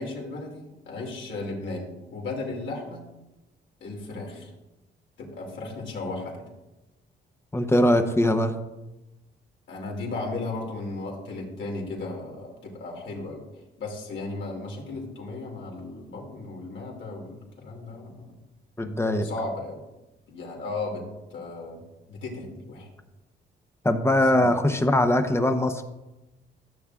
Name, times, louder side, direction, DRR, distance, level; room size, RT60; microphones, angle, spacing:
voice 1, 0.0-3.0 3.8-4.5 5.2-6.4 9.7-13.4 13.8-18.3 19.2-19.8 20.3-21.0 21.3-21.8 22.1-22.9 24.3-24.5, left 3 dB, 70° left, -2 dB, 2.7 m, -35 dB
voice 2, 7.5-8.5 18.8-19.3 23.8-25.8, left 1 dB, 15° left, 7 dB, 0.8 m, -21 dB
13.5 x 7.1 x 2.4 m, 1.0 s
cardioid pair, 90°, 20 cm